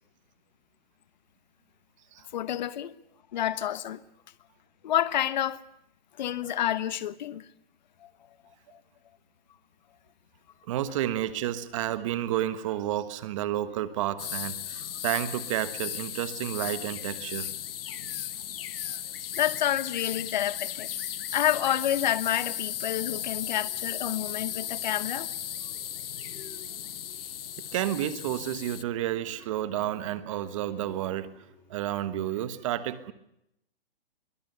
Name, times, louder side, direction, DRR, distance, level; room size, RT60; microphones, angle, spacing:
voice 1, 2.3-2.9 3.3-4.0 4.8-5.6 6.2-7.4 8.0-8.1 8.7-8.8 19.3-20.9 21.3-25.3, left 11 dB, 50° left, 1.2 m, -29 dB
voice 2, 10.7-17.5 27.7-31.3 31.7-33.1, right 12 dB, 35° right, 1.4 m, -31 dB
sound 1, 14.2-28.8, left 10 dB, 75° left, 0.8 m, -36 dB
sound 2, 23.3-31.8, left 4 dB, 5° left, 7.5 m, -55 dB
23.0 x 18.0 x 8.1 m
hypercardioid pair, 165°, 29 cm